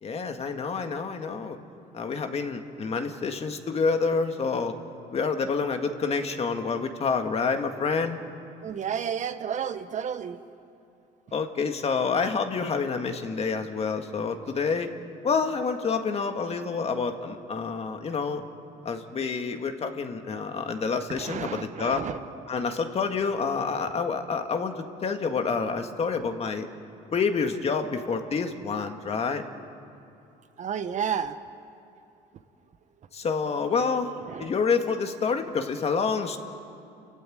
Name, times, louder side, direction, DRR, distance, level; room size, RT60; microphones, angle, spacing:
voice 1, 0.0-1.6 1.9-4.7 5.1-8.2 11.3-14.9 15.2-18.4 18.8-22.0 22.5-26.7 27.1-29.4 33.1-34.1 34.4-36.4, left 5 dB, 40° left, 6 dB, 1.9 m, -28 dB
voice 2, 8.6-10.4 21.1-22.2 30.6-31.3 34.3-34.5, right 8 dB, 50° right, 10 dB, 1.1 m, -31 dB
29.5 x 15.0 x 9.3 m, 2.6 s
cardioid pair, 95°, 16 cm